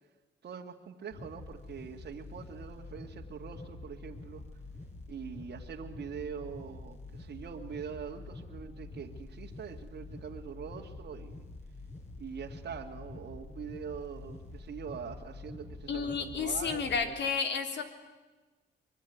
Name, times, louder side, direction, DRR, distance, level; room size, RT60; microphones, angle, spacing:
voice 1, 0.4-4.4 5.1-11.4 12.2-17.2, right 7 dB, 55° right, 0 dB, 2.3 m, -43 dB
sound 1, 1.1-17.1, left 2 dB, 35° left, 7.6 m, -47 dB
voice 2, 15.9-17.8, left 5 dB, 65° left, 6 dB, 3.6 m, -31 dB
24.5 x 22.5 x 9.5 m, 1.3 s
cardioid pair, 90°, 20 cm